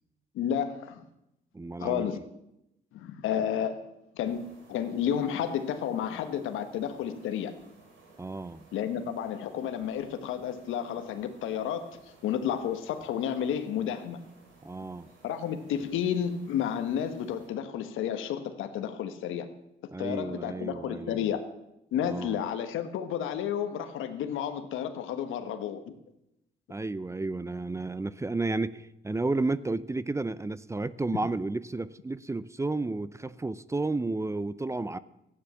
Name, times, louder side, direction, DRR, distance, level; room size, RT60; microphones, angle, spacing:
voice 1, 0.3-1.0 1.8-2.2 2.9-3.8 4.1-7.5 8.7-12.0 12.2-14.2 15.2-19.5 20.0-21.4 21.9-25.9, left 9 dB, 85° left, 8 dB, 1.3 m, -31 dB
voice 2, 1.5-2.2 8.2-8.7 14.6-15.1 19.9-21.3 22.0-22.4 26.7-35.0, right 3 dB, 15° right, 17 dB, 0.5 m, -32 dB
sound 1, 4.2-17.5, right 3 dB, 75° right, 4.4 m, -58 dB
13.5 x 9.7 x 7.1 m, 0.84 s
cardioid pair, 90°, 20 cm